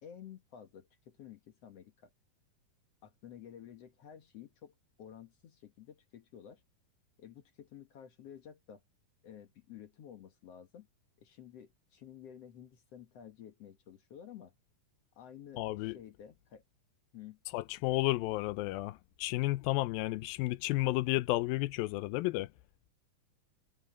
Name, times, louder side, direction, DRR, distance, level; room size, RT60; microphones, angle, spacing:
voice 1, 0.0-2.1 3.0-6.6 7.2-8.8 9.2-10.9 11.2-14.5 15.2-16.6 17.1-17.4, left 9 dB, 55° left, 1.9 m, -52 dB
voice 2, 15.6-16.0 17.5-22.5, left 18 dB, 85° left, 2.4 m, -32 dB
omnidirectional pair, 4.1 m